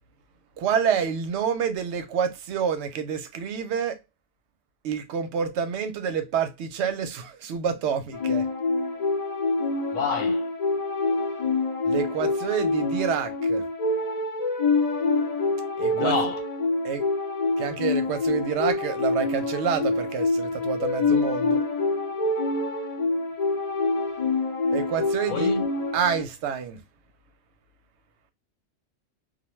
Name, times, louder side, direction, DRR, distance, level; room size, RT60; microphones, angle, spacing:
voice 1, 0.6-4.0 4.8-8.4 11.8-13.7 15.8-16.2 16.8-17.1 17.6-21.6 24.7-25.5 25.9-26.8, right 7 dB, 65° right, 0.8 m, -28 dB
sound 1, 8.1-26.2, left 3 dB, 35° left, 0.6 m, -26 dB
voice 2, 9.9-10.5 15.9-16.4 25.3-25.6, left 5 dB, 80° left, 1.2 m, -27 dB
2.3 x 2.1 x 3.0 m
omnidirectional pair, 1.3 m